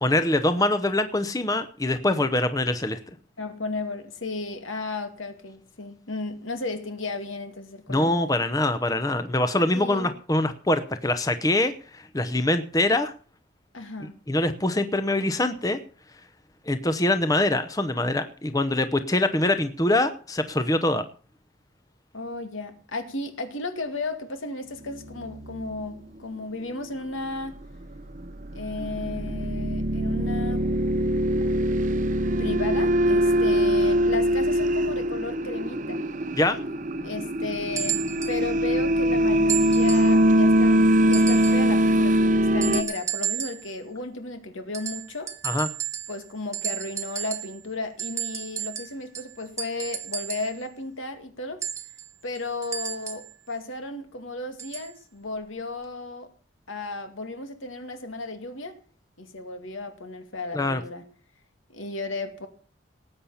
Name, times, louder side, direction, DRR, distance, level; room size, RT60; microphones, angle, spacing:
voice 1, 0.0-3.0 7.9-13.1 14.3-15.8 16.7-21.0 36.4-36.6 45.4-45.7 60.5-60.8, left 1 dB, 20° left, 0.8 m, -24 dB
voice 2, 3.4-8.2 9.7-10.1 13.7-14.2 22.1-27.6 28.5-30.7 32.4-36.0 37.0-45.3 46.1-51.6 52.2-56.3 56.7-58.8 59.2-61.0 61.7-62.5, left 3 dB, 80° left, 2.3 m, -34 dB
sound 1, 25.0-25.8 28.2-42.8, equal, 40° right, 0.8 m, -22 dB
sound 2, 37.7-38.4 39.5-40.2 41.1-41.7 42.6-43.7 44.7-46.3 46.5-47.6 48.0-50.6 51.6-53.3 54.6-54.9 55.8-55.9, right 9 dB, 15° right, 1.1 m, -33 dB
19.0 x 8.6 x 5.7 m
head